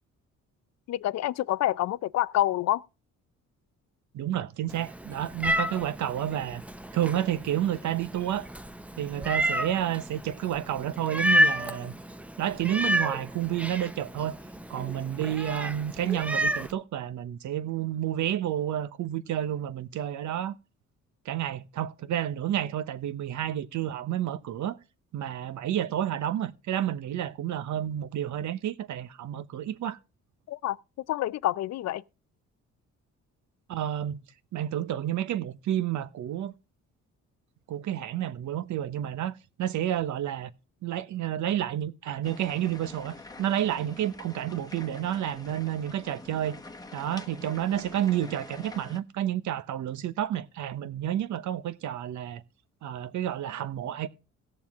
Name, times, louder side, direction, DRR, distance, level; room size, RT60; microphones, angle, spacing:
voice 1, 0.9-2.8 30.5-30.8 31.1-32.0, left 14 dB, 60° left, 0.5 m, -27 dB
voice 2, 4.1-6.6 6.9-8.5 9.0-11.9 12.4-14.4 14.7-20.6 21.2-24.8 25.1-30.0 33.7-34.2 34.5-36.5 37.7-40.5 40.8-46.6 46.9-52.4 52.8-54.1, right 11 dB, 70° right, 1.0 m, -30 dB
Meow, 4.7-16.7, equal, 5° right, 0.7 m, -31 dB
sound 1, 42.2-49.0, left 2 dB, 10° left, 1.0 m, -46 dB
17.5 x 7.0 x 3.6 m
cardioid pair, 90°, 30 cm